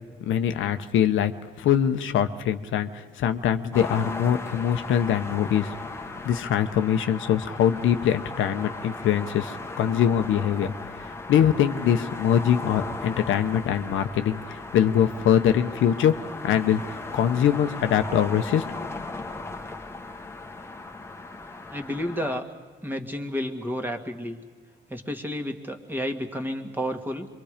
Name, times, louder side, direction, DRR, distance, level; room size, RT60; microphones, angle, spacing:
voice 1, 0.2-1.3 1.6-5.7 6.2-16.1 16.4-16.8 17.1-18.9, left 9 dB, 80° left, 8 dB, 0.9 m, -23 dB
sound 1, 3.7-22.4, left 3 dB, 15° left, 1.3 m, -37 dB
voice 2, 21.3-22.5 22.8-24.4 24.9-27.3, equal, 10° right, 4 dB, 2.0 m, -31 dB
26.5 x 23.0 x 5.1 m, 1.5 s
cardioid pair, 90°, 20 cm